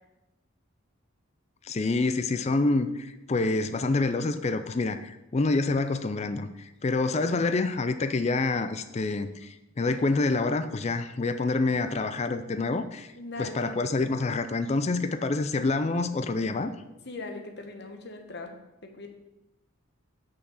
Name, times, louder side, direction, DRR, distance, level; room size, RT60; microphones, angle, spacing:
voice 1, 1.6-13.1 13.4-16.7, left 3 dB, 30° left, 10 dB, 0.4 m, -27 dB
voice 2, 7.1-7.5 13.1-14.0 16.8-19.1, left 2 dB, 50° left, 4 dB, 1.2 m, -41 dB
6.2 x 6.0 x 7.2 m, 0.95 s
head